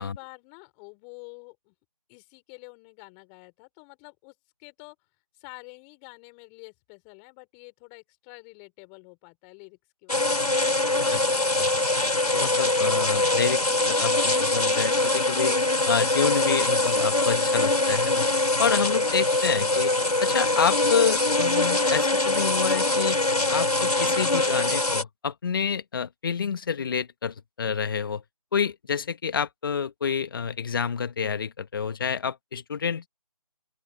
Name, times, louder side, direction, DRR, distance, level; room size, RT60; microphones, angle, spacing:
voice 1, 0.0-1.7 2.1-5.0 5.3-10.3, left 38 dB, 15° left, 4.6 m, -48 dB
sound 1, 10.1-25.0, left 2 dB, 85° left, 3.3 m, -23 dB
voice 2, 12.3-15.6 15.9-18.3 18.6-19.9 20.2-23.2 23.5-28.2 28.5-33.1, left 6 dB, 35° left, 1.6 m, -28 dB
open air
figure-of-eight pair, 160°, 19 cm